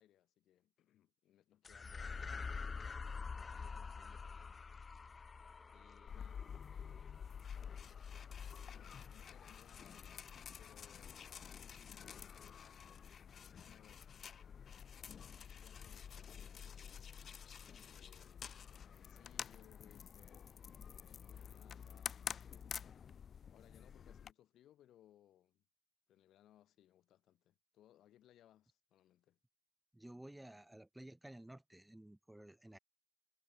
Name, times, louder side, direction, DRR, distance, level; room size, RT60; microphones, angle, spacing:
voice 1, 0.0-2.6 3.4-4.6 5.7-7.4 7.8-10.3 10.6-12.8 13.4-14.6 15.4-17.2 17.9-23.0 23.5-25.6 26.1-29.4, left 12 dB, 80° left, 7.0 m, -67 dB
sound 1, 1.6-10.3, left 4 dB, 35° left, 0.8 m, -48 dB
sound 2, 6.1-24.3, left 7 dB, 55° left, 1.3 m, -50 dB
voice 2, 29.9-32.8, right 1 dB, 10° right, 2.7 m, -54 dB
cardioid pair, 90°, 0 cm